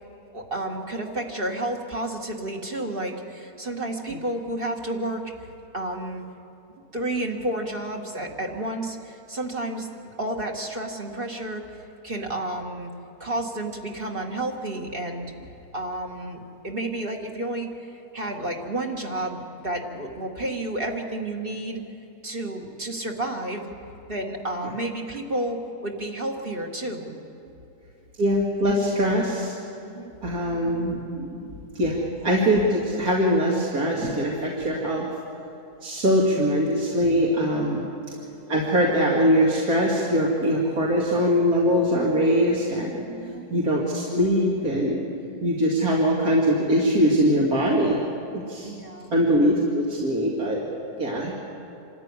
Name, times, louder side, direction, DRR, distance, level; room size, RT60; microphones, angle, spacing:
voice 1, 0.3-5.5 5.7-6.2 6.9-9.9 10.2-11.6 12.0-12.9 13.2-15.5 15.7-21.8 22.2-23.7 24.1-27.1 29.8-30.2 31.8-31.9 37.8-37.9 43.1-43.5 48.6-49.1 51.2-51.3, right 1 dB, 35° right, 0 dB, 2.0 m, -31 dB
voice 2, 28.2-29.5 30.2-31.3 31.7-35.1 35.8-37.8 38.5-43.1 43.5-45.1 45.4-48.0 48.3-48.7 49.1-50.6 51.0-51.3, equal, 60° right, -4 dB, 2.6 m, -22 dB
26.5 x 14.0 x 9.6 m, 2.7 s
omnidirectional pair, 1.8 m